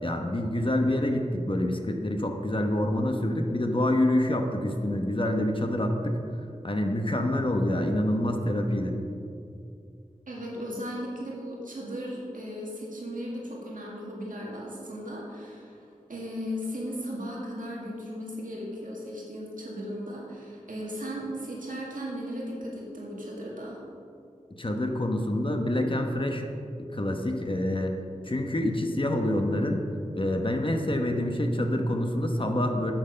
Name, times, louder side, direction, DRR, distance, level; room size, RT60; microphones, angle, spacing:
voice 1, 0.0-6.2 6.6-9.0 24.6-26.4 26.9-28.0 28.3-29.8 30.1-32.9, left 1 dB, 40° left, 4 dB, 1.0 m, -27 dB
voice 2, 10.3-23.8, equal, 85° right, -4 dB, 2.0 m, -36 dB
9.2 x 6.7 x 5.2 m, 2.5 s
wide cardioid pair, 55°, 13 cm